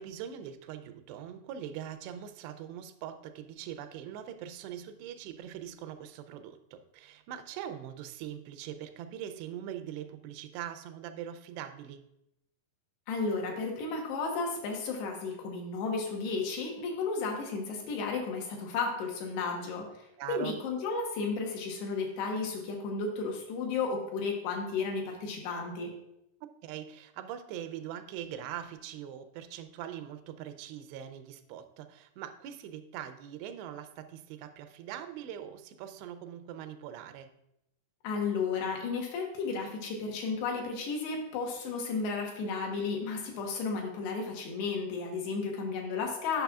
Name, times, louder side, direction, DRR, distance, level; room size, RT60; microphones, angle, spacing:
voice 1, 0.0-12.0 20.2-20.6 26.6-37.3, right 10 dB, 90° right, 10 dB, 2.7 m, -42 dB
voice 2, 13.1-19.9 20.3-25.9 38.0-46.4, left 4 dB, 85° left, 1 dB, 3.3 m, -33 dB
10.0 x 5.9 x 2.3 m, 0.81 s
omnidirectional pair, 4.7 m